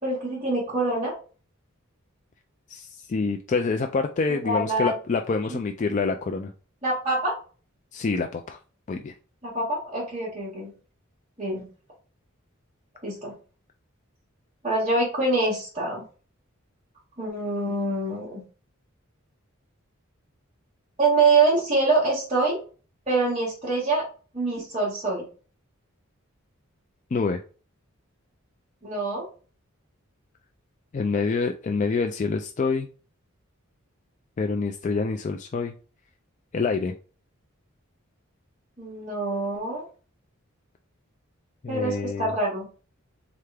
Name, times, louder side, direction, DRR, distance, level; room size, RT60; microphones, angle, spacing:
voice 1, 0.0-1.1 4.4-4.9 5.5-5.6 6.8-7.3 9.4-10.7 11.4-11.6 13.0-13.3 14.6-16.0 17.2-18.4 21.0-22.6 23.1-24.0 24.3-25.3 28.8-29.2 38.8-39.8 41.7-42.7, right 3 dB, 30° right, -10 dB, 1.7 m, -25 dB
voice 2, 2.7-6.5 7.9-8.6 8.9-9.1 27.1-27.4 30.9-32.9 34.4-35.7 36.5-36.9 41.6-42.3, left 4 dB, 35° left, 5 dB, 0.3 m, -26 dB
3.8 x 3.4 x 3.3 m, 0.37 s
head